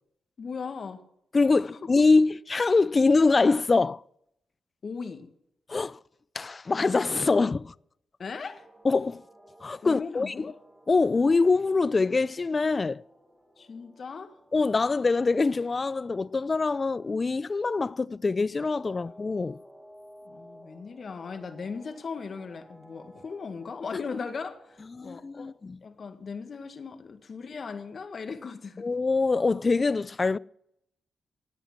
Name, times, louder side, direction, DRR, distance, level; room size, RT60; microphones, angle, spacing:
voice 1, 0.4-1.0 1.5-1.9 4.8-5.3 8.2-8.7 9.8-10.5 13.6-14.3 18.9-19.2 20.2-25.5 25.8-28.9, left 5 dB, 55° left, 1.8 m, -38 dB
voice 2, 1.3-4.0 5.7-6.0 6.3-7.7 8.8-9.2 9.6-10.3 10.9-13.0 14.5-19.6 24.9-25.8 28.8-30.4, left 3 dB, 40° left, 0.5 m, -24 dB
sound 1, 8.2-24.8, equal, 10° right, 4.0 m, -55 dB
18.5 x 8.3 x 6.1 m
supercardioid pair, 50°, 0 cm